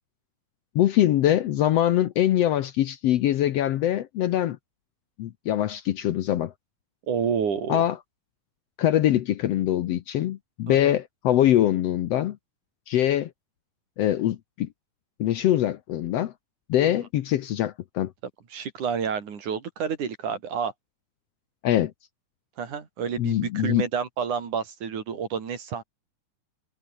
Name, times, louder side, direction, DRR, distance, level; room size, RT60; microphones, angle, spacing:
voice 1, 0.7-4.6 5.2-6.5 7.7-8.0 8.8-12.4 12.9-13.3 14.0-14.7 15.2-16.3 16.7-18.1 21.6-21.9 23.2-23.8, left 12 dB, 65° left, 1.7 m, -23 dB
voice 2, 7.1-7.8 10.7-11.0 16.8-16.9 18.5-20.7 22.6-25.8, right 7 dB, 75° right, 4.7 m, -29 dB
omnidirectional pair, 3.5 m